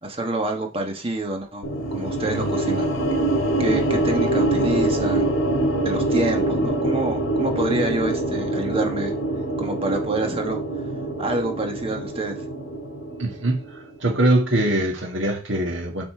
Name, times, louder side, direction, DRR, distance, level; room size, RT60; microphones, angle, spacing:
voice 1, 0.0-2.9 3.6-5.3 5.8-9.1 9.6-10.6 11.2-12.4, right 2 dB, 25° right, 1.3 m, -27 dB
sound 1, 1.6-13.9, right 1 dB, 70° left, 1.8 m, -24 dB
voice 2, 13.2-16.0, right 1 dB, 65° right, 1.8 m, -22 dB
7.4 x 4.3 x 4.5 m
head